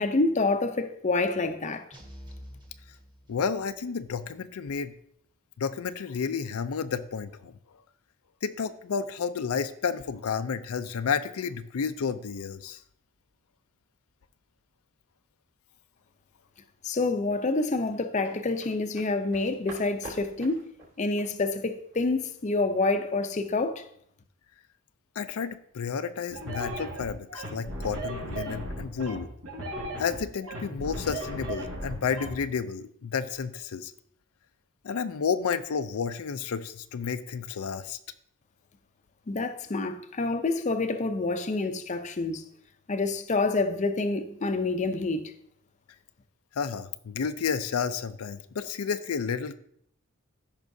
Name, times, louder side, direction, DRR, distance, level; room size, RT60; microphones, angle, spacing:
voice 1, 0.0-1.9 16.8-20.7 21.0-23.8 39.3-42.4 42.9-45.3, left 3 dB, 35° left, 0.5 m, -27 dB
sound 1, 1.9-3.8, equal, 20° right, 1.3 m, -47 dB
voice 2, 3.3-4.9 5.6-7.8 8.4-12.8 25.2-29.3 30.0-33.9 34.8-38.0 46.6-49.6, left 6 dB, 80° left, 0.5 m, -31 dB
sound 2, 17.9-23.1 23.4-23.6, right 1 dB, 50° right, 2.6 m, -47 dB
sound 3, 26.3-32.3, right 1 dB, 85° right, 3.6 m, -36 dB
14.0 x 5.4 x 2.7 m
head